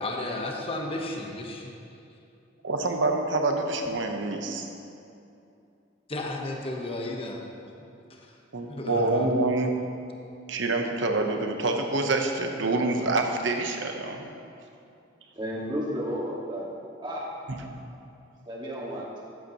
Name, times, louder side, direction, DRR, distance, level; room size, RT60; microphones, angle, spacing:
voice 1, 0.0-1.8 6.1-7.4 7.8-8.4 8.7-9.3, left 2 dB, 30° left, 1 dB, 1.0 m, -34 dB
voice 2, 2.6-4.7 8.5-9.7 10.5-14.3 17.5-17.7, right 2 dB, 80° right, 4 dB, 1.0 m, -26 dB
voice 3, 15.4-16.7 17.0-17.3 18.5-19.1, equal, 25° right, -5 dB, 1.8 m, -32 dB
14.5 x 8.2 x 3.0 m, 2.6 s
head